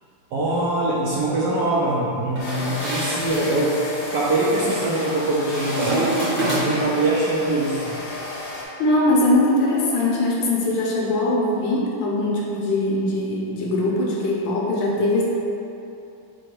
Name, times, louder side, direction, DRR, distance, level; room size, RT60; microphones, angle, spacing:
voice 1, 0.3-3.8 4.1-7.9, right 2 dB, 75° right, -6 dB, 1.0 m, -23 dB
sound 1, 2.4-8.7, left 1 dB, 85° left, 1.7 m, -32 dB
sound 2, 2.4-3.5 4.6-5.1 5.4-6.9, right 2 dB, 15° right, 0.5 m, -26 dB
voice 2, 8.8-15.2, left 1 dB, 70° left, -4 dB, 1.2 m, -21 dB
4.7 x 2.2 x 4.5 m, 2.8 s
omnidirectional pair, 2.3 m